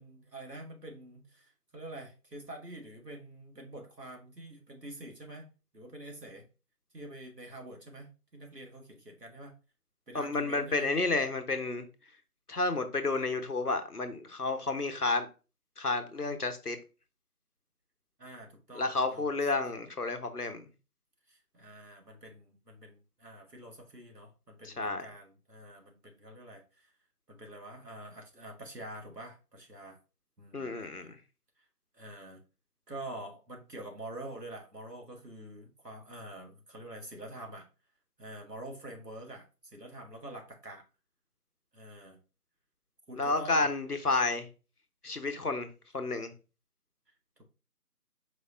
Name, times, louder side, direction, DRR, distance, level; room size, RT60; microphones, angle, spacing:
voice 1, 0.0-6.5 6.9-9.5 10.1-10.9 18.2-19.3 21.3-26.9 27.3-30.0 30.4-31.1 31.9-32.4 32.9-37.7 38.2-39.5 39.7-40.8 41.7-42.2 43.1-43.7, right 1 dB, 85° right, 1.8 m, -46 dB
voice 2, 10.1-11.9 12.5-15.3 15.8-16.8 18.7-20.7 24.6-25.1 30.5-31.2 43.2-44.5 45.0-46.3, left 3 dB, 70° left, 1.0 m, -31 dB
4.8 x 4.3 x 2.5 m
figure-of-eight pair, 175°, 47 cm